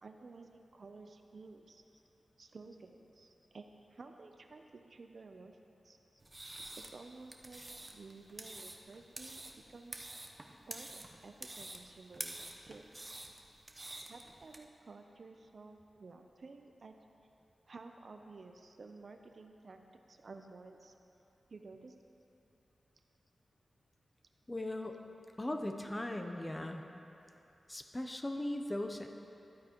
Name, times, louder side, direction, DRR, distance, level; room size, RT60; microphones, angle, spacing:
voice 1, 0.0-1.8 2.4-5.6 5.8-6.0 6.8-7.6 7.9-10.1 10.7-12.9 14.1-16.9 17.7-20.9 21.5-21.9, right 3 dB, 60° right, 5 dB, 0.5 m, -53 dB
sound 1, 6.2-14.6, right 2 dB, 30° right, 0.7 m, -48 dB
voice 2, 24.5-25.0 25.4-26.8 27.7-29.1, left 1 dB, 20° left, 5 dB, 0.6 m, -38 dB
12.0 x 8.6 x 3.0 m, 2.9 s
wide cardioid pair, 75°, 0 cm